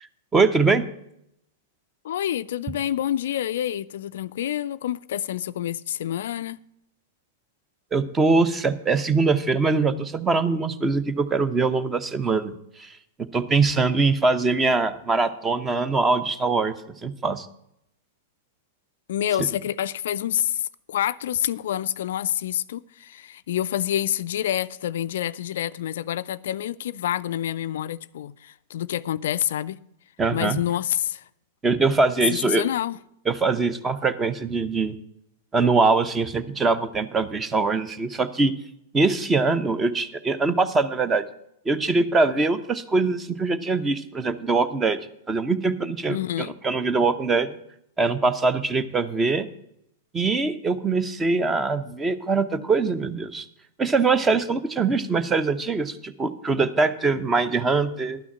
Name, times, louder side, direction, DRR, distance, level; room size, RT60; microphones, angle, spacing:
voice 1, 0.3-0.9 7.9-12.5 12.8-12.9 13.3-16.7 17.0-17.5 30.2-30.6 31.6-32.6 33.3-35.0 35.5-38.5 38.9-41.2 41.7-45.0 45.3-47.6 48.0-49.5 50.1-53.4 53.8-58.2, right 3 dB, 20° right, 0.8 m, -22 dB
voice 2, 2.0-6.6 19.1-29.8 30.3-31.2 32.3-33.0 46.1-46.5, left 11 dB, 65° left, 0.3 m, -27 dB
11.5 x 6.1 x 7.2 m
figure-of-eight pair, 100°, 0 cm